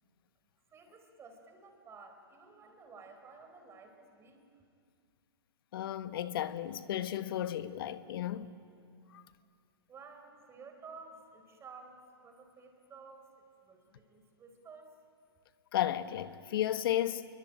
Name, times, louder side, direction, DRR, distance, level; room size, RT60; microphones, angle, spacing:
voice 1, 0.7-4.6 9.9-14.9, right 4 dB, 20° right, 4.3 m, -53 dB
voice 2, 5.7-8.5 9.1-9.2 15.7-17.3, left 12 dB, 55° left, 1.3 m, -33 dB
25.5 x 23.0 x 9.1 m
hypercardioid pair, 120°, 14 cm